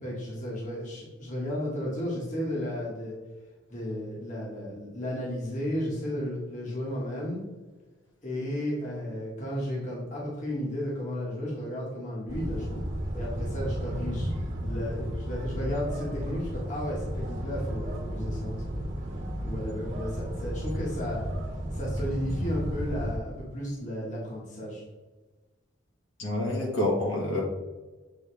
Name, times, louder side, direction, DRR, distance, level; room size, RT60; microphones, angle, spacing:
voice 1, 0.0-3.1 3.7-7.4 8.2-12.8 13.1-14.3 14.6-18.6 19.4-21.2 21.7-24.8, equal, 40° left, -5 dB, 1.5 m, -33 dB
sound 1, 12.3-23.2, equal, 40° right, 1.4 m, -33 dB
voice 2, 26.2-27.4, left 1 dB, 70° left, -3 dB, 1.9 m, -27 dB
8.1 x 3.7 x 3.3 m, 1.2 s
head